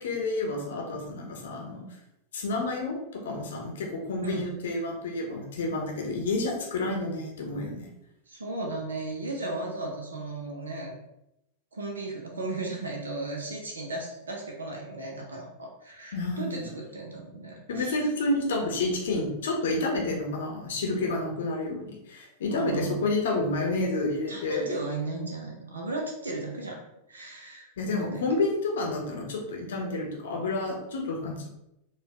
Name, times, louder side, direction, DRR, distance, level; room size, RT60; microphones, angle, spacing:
voice 1, 0.0-1.8 2.3-7.9 16.1-16.6 17.7-24.6 27.8-31.5, left 2 dB, 60° left, 1 dB, 0.7 m, -30 dB
voice 2, 8.3-10.9 11.7-18.0 22.5-23.0 24.3-26.8 27.1-27.7 28.0-28.3, right 2 dB, 70° right, 0 dB, 0.6 m, -35 dB
4.3 x 2.3 x 2.8 m, 0.84 s
figure-of-eight pair, 90°, 0 cm